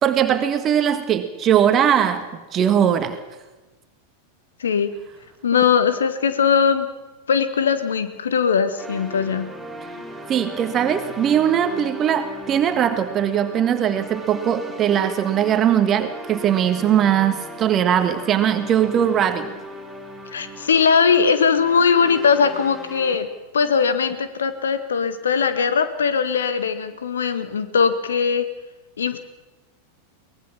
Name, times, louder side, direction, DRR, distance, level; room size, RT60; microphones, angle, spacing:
voice 1, 0.0-2.2 2.5-3.2 10.3-19.5, right 9 dB, 30° right, 9 dB, 1.6 m, -20 dB
voice 2, 5.4-6.9 7.3-9.5 20.3-23.3 23.5-28.4 29.0-29.2, left 6 dB, 65° left, 11 dB, 1.8 m, -20 dB
sound 1, 8.8-23.2, equal, 5° right, 4.9 m, -37 dB
23.5 x 19.0 x 7.1 m, 1.1 s
figure-of-eight pair, 90°, 0 cm